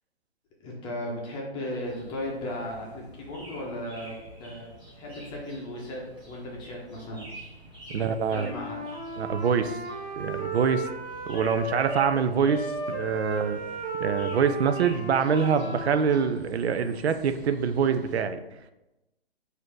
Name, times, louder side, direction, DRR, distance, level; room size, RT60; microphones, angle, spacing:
voice 1, 0.6-7.2 8.3-8.8, left 1 dB, 15° left, -2 dB, 0.7 m, -36 dB
sound 1, 1.8-18.2, equal, 15° right, 1.6 m, -48 dB
voice 2, 7.9-8.5 9.2-9.8 10.2-10.9 11.3-13.6 14.0-18.4, right 6 dB, 80° right, 10 dB, 0.5 m, -25 dB
Wind instrument woodwind instrument, 8.4-12.1 12.4-16.3, right 2 dB, 45° right, 0.9 m, -35 dB
4.1 x 2.7 x 4.6 m, 0.97 s
hypercardioid pair, 135°, 32 cm